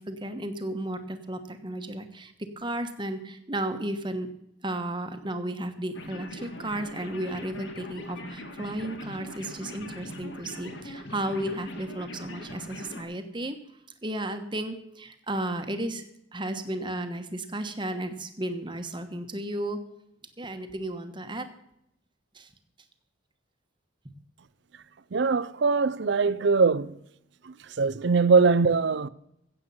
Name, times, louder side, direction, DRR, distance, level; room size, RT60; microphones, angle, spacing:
voice 1, 0.0-4.3 4.6-13.6 14.0-19.8 20.4-21.5 22.3-22.5, right 1 dB, 25° right, 1.2 m, -34 dB
sound 1, 5.9-13.0, left 1 dB, 60° left, 1.8 m, -41 dB
voice 2, 25.1-27.0 27.4-29.1, right 4 dB, 60° right, 0.5 m, -22 dB
15.5 x 8.2 x 5.6 m
head